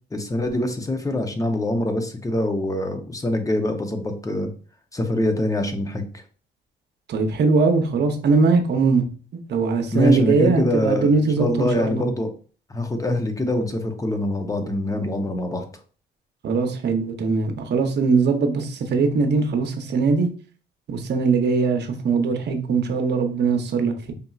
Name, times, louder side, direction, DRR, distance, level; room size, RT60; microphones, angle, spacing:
voice 1, 0.1-4.5 4.9-6.2 9.9-11.1 11.4-12.3 12.7-15.6, left 1 dB, 15° left, 0.7 m, -24 dB
voice 2, 7.1-9.0 9.5-12.0 16.4-20.3 20.9-24.1, right 4 dB, 60° right, 0.8 m, -21 dB
5.2 x 2.8 x 2.4 m
cardioid pair, 90°, 20 cm